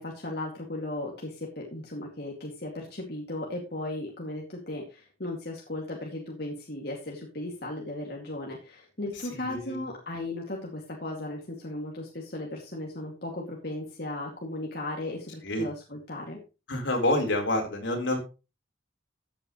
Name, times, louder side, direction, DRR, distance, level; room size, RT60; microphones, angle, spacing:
voice 1, 0.0-16.4, left 1 dB, 55° left, -1 dB, 2.4 m, -36 dB
voice 2, 9.5-9.9 15.4-15.7 16.7-18.2, left 1 dB, 80° left, 1 dB, 4.2 m, -27 dB
14.0 x 8.8 x 3.2 m, 0.30 s
head